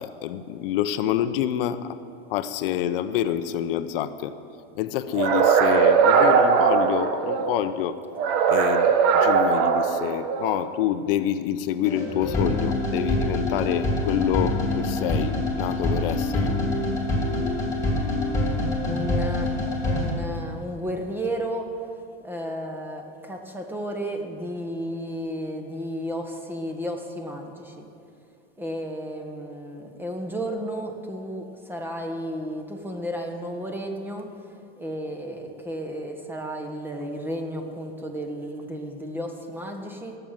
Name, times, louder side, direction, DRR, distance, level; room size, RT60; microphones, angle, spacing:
voice 1, 0.0-1.9 2.3-4.3 4.8-8.0 8.5-16.5, left 11 dB, 75° left, 11 dB, 0.7 m, -27 dB
sound 1, 5.2-7.6 8.2-10.6, right 6 dB, 55° right, 1.1 m, -20 dB
sound 2, 11.8-20.1, left 1 dB, 10° left, 2.7 m, -25 dB
voice 2, 18.8-19.5 19.8-21.7 22.2-27.9 28.6-34.3 34.8-40.2, equal, 5° right, 3 dB, 1.2 m, -33 dB
17.0 x 6.8 x 7.4 m, 2.5 s
supercardioid pair, 145°, 29 cm